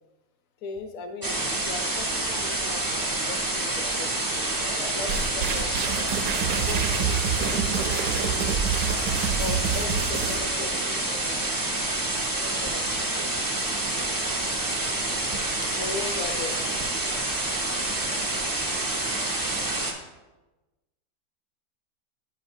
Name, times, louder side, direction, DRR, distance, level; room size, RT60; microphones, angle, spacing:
voice 1, 0.6-5.7 6.5-8.6 9.4-11.4 12.3-13.4 14.3-14.4 15.6-16.5, left 4 dB, 60° left, 6 dB, 1.0 m, -39 dB
sound 1, 1.2-19.9, right 2 dB, 35° right, 0.3 m, -28 dB
sound 2, 5.1-10.4, right 6 dB, 70° right, 0.7 m, -28 dB
8.7 x 5.8 x 2.6 m, 1.1 s
omnidirectional pair, 1.8 m